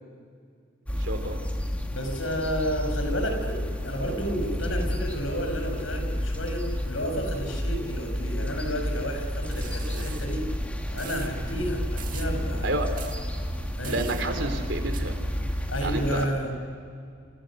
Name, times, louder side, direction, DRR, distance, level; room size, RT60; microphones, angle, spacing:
sound 1, 0.9-16.2, equal, 5° left, 2.8 m, -31 dB
voice 1, 1.0-1.4 12.6-12.9 13.9-15.2 15.8-16.2, right 2 dB, 65° right, 6 dB, 4.0 m, -30 dB
voice 2, 1.9-3.6 3.8-10.5 10.9-12.7 13.8-14.0 15.7-16.6, equal, 90° left, 3 dB, 7.6 m, -31 dB
sound 2, 9.5-10.3 11.0-11.3 12.0-12.3 13.0-13.2 13.8-14.2 14.9-15.0, right 9 dB, 45° right, 2.2 m, -42 dB
30.0 x 29.5 x 6.6 m, 2.2 s
head